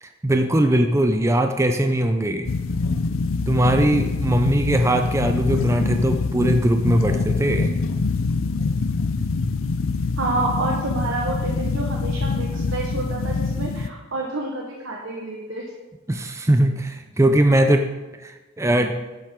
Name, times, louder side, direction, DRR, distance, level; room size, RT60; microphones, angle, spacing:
voice 1, 0.0-2.5 3.5-7.8 16.1-17.9 18.2-19.0, right 1 dB, 15° right, 6 dB, 0.5 m, -20 dB
sound 1, 2.4-13.9, left 4 dB, 85° left, 0.6 m, -24 dB
voice 2, 10.2-15.7, right 2 dB, 75° right, -1 dB, 1.2 m, -28 dB
11.5 x 7.6 x 3.7 m, 1.2 s
head